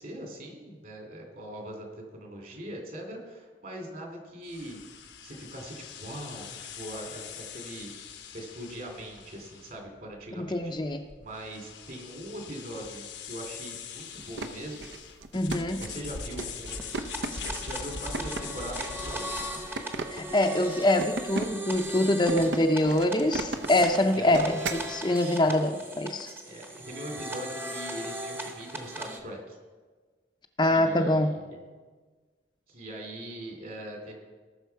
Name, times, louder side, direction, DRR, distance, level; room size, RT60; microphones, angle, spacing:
voice 1, 0.0-1.9 2.1-4.8 5.2-7.9 8.3-10.7 11.2-14.8 15.8-17.0 17.6-19.6 24.1-24.6 25.5-25.6 26.4-29.6 30.7-31.6 32.7-34.1, right 1 dB, 50° right, 2 dB, 2.6 m, -41 dB
sound 1, 4.4-19.8, left 6 dB, 80° left, 1.0 m, -42 dB
voice 2, 10.4-11.0 15.3-15.9 20.1-26.3 30.6-31.4, left 1 dB, 25° left, 5 dB, 0.6 m, -25 dB
sound 2, 14.1-24.9, right 2 dB, 75° right, 0.7 m, -37 dB
sound 3, 16.7-29.2, right 1 dB, 10° right, 0.8 m, -39 dB
18.5 x 6.3 x 4.6 m, 1.4 s
head